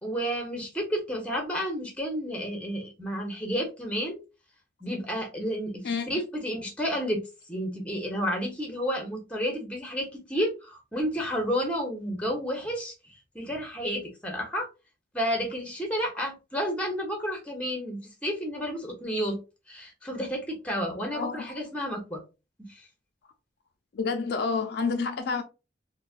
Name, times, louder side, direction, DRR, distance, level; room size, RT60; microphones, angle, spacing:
voice 1, 0.0-4.2 4.8-7.2 7.5-14.7 15.1-19.4 19.7-22.2 22.7-22.8, equal, 5° left, 0.9 m, -31 dB
voice 2, 21.1-21.4 23.9-25.4, left 4 dB, 55° left, 0.4 m, -29 dB
4.0 x 2.2 x 2.4 m
head